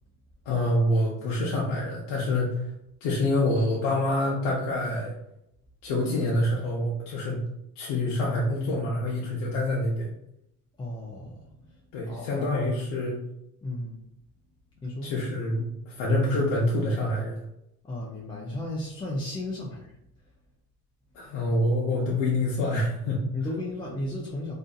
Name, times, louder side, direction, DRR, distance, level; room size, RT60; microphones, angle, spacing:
voice 1, 0.5-2.7 3.0-5.1 5.8-7.4 7.8-10.1 11.9-13.2 15.0-17.4 21.1-23.2, left 1 dB, 85° left, -3 dB, 0.7 m, -26 dB
voice 2, 10.8-12.6 13.6-14.0 14.8-15.1 17.8-19.9 23.3-24.5, left 1 dB, 15° left, -4 dB, 0.3 m, -34 dB
2.6 x 2.5 x 2.3 m, 0.80 s
cardioid pair, 115°, 39 cm